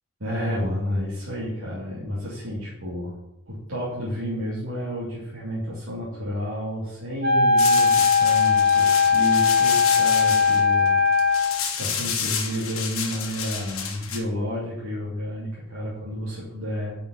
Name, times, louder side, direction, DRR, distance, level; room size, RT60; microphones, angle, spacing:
voice 1, 0.2-3.1 3.5-10.9 11.8-17.0, equal, 75° right, -8 dB, 2.5 m, -30 dB
Wind instrument woodwind instrument, 7.2-11.6, left 5 dB, 45° right, 0.9 m, -19 dB
sound 1, 7.6-14.2, left 7 dB, 75° left, 1.3 m, -30 dB
9.1 x 5.6 x 4.1 m, 0.84 s
head